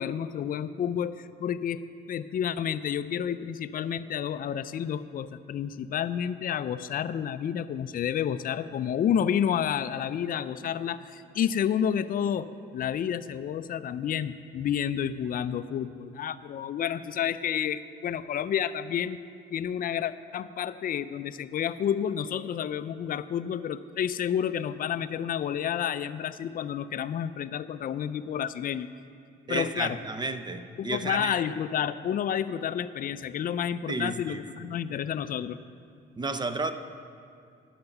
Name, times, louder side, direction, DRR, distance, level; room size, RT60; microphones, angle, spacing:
voice 1, 0.0-1.8 2.1-19.2 19.5-28.9 29.5-30.0 30.8-35.6, left 9 dB, 45° left, 13 dB, 0.4 m, -30 dB
voice 2, 29.5-31.3 33.9-34.7 36.2-36.7, right 3 dB, 20° right, 9 dB, 0.6 m, -32 dB
10.5 x 5.9 x 7.0 m, 2.4 s
cardioid pair, 90°, 20 cm